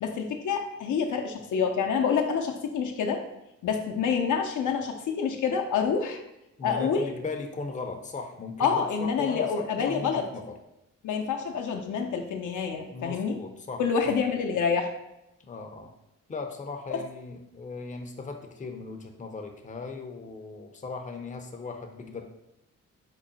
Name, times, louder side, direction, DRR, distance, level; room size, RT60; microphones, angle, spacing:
voice 1, 0.0-3.2 3.6-6.2 6.6-7.1 8.6-10.2 11.0-13.4 13.8-14.9 16.9-17.0, left 6 dB, 70° left, 3 dB, 0.6 m, -27 dB
voice 2, 6.6-8.8 9.2-10.4 12.9-13.8 15.4-15.9 16.3-22.2, left 4 dB, 25° left, 4 dB, 0.5 m, -38 dB
3.8 x 2.0 x 3.9 m, 0.87 s
cardioid pair, 55°, 32 cm